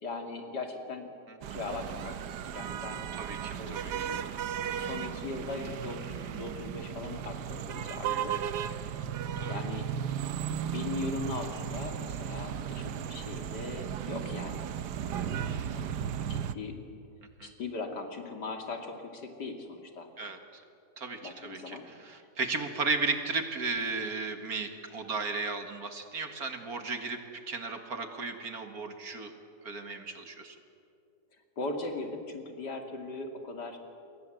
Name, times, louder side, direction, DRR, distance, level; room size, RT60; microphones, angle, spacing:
voice 1, 0.0-1.1 1.5-3.1 3.5-4.3 4.7-8.3 9.5-9.9 10.7-14.7 15.3-16.8 17.4-20.1 21.2-21.9 31.6-33.8, left 3 dB, 85° left, 4 dB, 3.1 m, -39 dB
sound 1, 1.4-16.5, right 9 dB, 90° right, 1.5 m, -35 dB
voice 2, 3.1-4.1 8.0-8.7 9.4-9.6 15.3-15.8 17.4-17.5 20.2-20.6 21.0-27.2 27.5-29.3 29.6-30.6, right 4 dB, 60° right, 6 dB, 2.4 m, -35 dB
28.0 x 22.5 x 7.9 m, 2.5 s
omnidirectional pair, 1.7 m